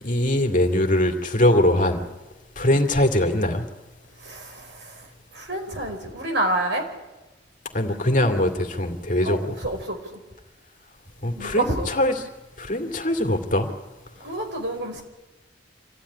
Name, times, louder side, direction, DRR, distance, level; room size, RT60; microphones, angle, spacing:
voice 1, 0.0-2.0 2.6-3.6 7.7-9.5 11.2-12.3 12.6-13.7, left 1 dB, 45° left, 4 dB, 2.5 m, -22 dB
voice 2, 4.2-5.0 5.3-6.8 9.2-10.2 11.3-11.9 14.2-15.0, right 1 dB, 70° right, 3 dB, 4.7 m, -28 dB
26.0 x 15.5 x 9.9 m, 1.1 s
head